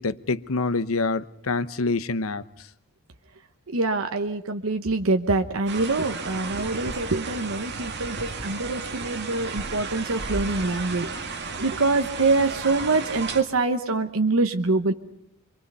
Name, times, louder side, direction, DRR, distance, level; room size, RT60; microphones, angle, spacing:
voice 1, 0.0-2.4, left 3 dB, 85° left, 14 dB, 0.9 m, -26 dB
voice 2, 3.7-11.1 11.6-14.9, right 3 dB, 80° right, 6 dB, 1.0 m, -25 dB
sound 1, 5.7-13.4, right 4 dB, 55° right, 2.2 m, -33 dB
27.0 x 24.0 x 5.6 m, 0.79 s
head